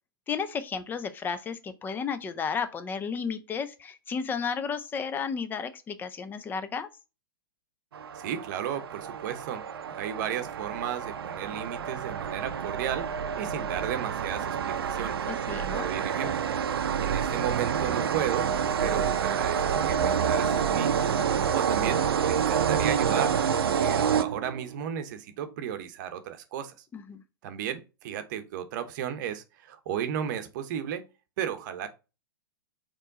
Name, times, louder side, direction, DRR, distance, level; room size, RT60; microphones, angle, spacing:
voice 1, 0.3-6.9 15.3-15.8 26.9-27.2, left 6 dB, 15° left, 0.5 m, -33 dB
sound 1, 7.9-24.7, right 7 dB, 85° right, 0.5 m, -28 dB
voice 2, 8.1-9.6 9.9-15.2 15.7-16.3 17.0-18.5 18.8-20.9 21.5-26.7 27.4-31.0 31.4-31.9, right 9 dB, 55° right, 0.8 m, -34 dB
4.4 x 3.1 x 3.7 m
hypercardioid pair, 125°, 12 cm